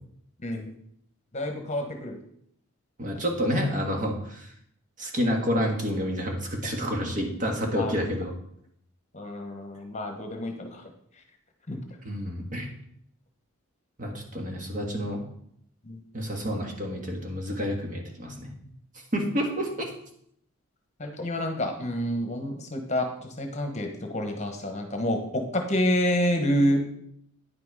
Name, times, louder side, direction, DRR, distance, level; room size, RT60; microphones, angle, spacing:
voice 1, 1.3-2.2 7.7-7.9 9.1-10.9 11.7-11.8 15.8-16.0 21.0-26.8, left 1 dB, 30° left, 4 dB, 1.1 m, -28 dB
voice 2, 3.0-4.5 5.0-8.3 12.0-12.7 14.0-15.2 16.1-18.5 19.1-19.7, equal, 35° right, 1 dB, 1.6 m, -29 dB
9.7 x 6.0 x 4.8 m, 0.70 s
head